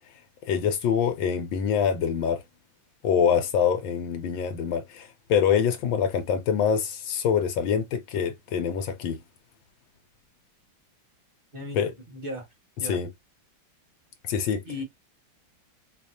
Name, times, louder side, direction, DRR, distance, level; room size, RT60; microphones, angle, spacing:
voice 1, 0.5-2.4 3.0-9.2 11.7-11.9 12.8-13.1 14.3-14.6, left 7 dB, 75° left, 1.3 m, -25 dB
voice 2, 11.5-12.4 12.8-13.0 14.6-14.8, left 1 dB, 30° right, 1.5 m, -36 dB
4.6 x 2.4 x 2.7 m
omnidirectional pair, 2.2 m